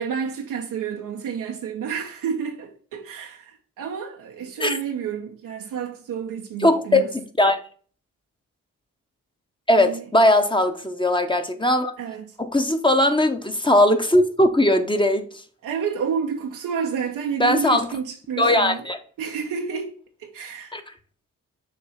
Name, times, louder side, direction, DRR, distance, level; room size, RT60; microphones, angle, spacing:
voice 1, 0.0-7.1 9.8-10.0 12.0-12.4 15.6-18.9 19.2-20.8, right 6 dB, 85° right, 0.9 m, -30 dB
voice 2, 6.6-7.6 9.7-11.9 12.4-15.3 17.4-17.9 18.4-19.0 20.7-20.8, left 1 dB, 15° left, 0.9 m, -19 dB
6.8 x 3.0 x 5.6 m
cardioid pair, 65°, 32 cm